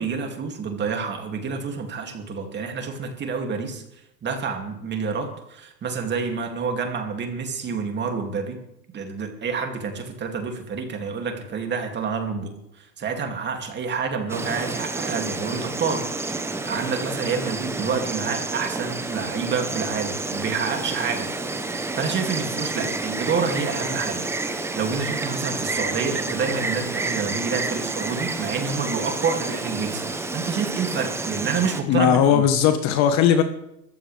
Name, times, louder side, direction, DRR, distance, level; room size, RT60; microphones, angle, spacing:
voice 1, 0.0-3.8 4.2-8.6 8.9-12.5 12.8-21.3 22.0-24.2 24.5-32.5, right 5 dB, 20° right, 4 dB, 2.6 m, -28 dB
Insect, 14.3-31.8, right 3 dB, 5° right, 0.9 m, -29 dB
voice 2, 31.9-33.4, left 9 dB, 35° left, 8 dB, 1.3 m, -18 dB
24.5 x 14.5 x 3.4 m, 0.81 s
hypercardioid pair, 125°, 50 cm